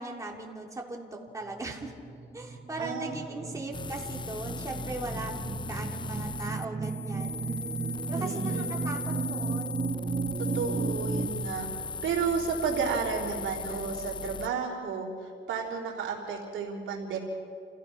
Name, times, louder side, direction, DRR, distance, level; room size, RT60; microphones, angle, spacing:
voice 1, 0.0-1.9 2.3-7.5 8.1-9.8, right 2 dB, 15° right, -1 dB, 3.2 m, -39 dB
sound 1, 1.5-11.3, right 4 dB, 30° right, 1.3 m, -34 dB
voice 2, 2.8-3.7 8.2-8.7 10.4-11.7 12.0-17.2, right 6 dB, 80° right, -1 dB, 3.8 m, -32 dB
sound 2, 3.7-14.5, left 5 dB, 25° left, 0.5 m, -38 dB
29.5 x 15.5 x 5.9 m, 2.3 s
cardioid pair, 90°, 20 cm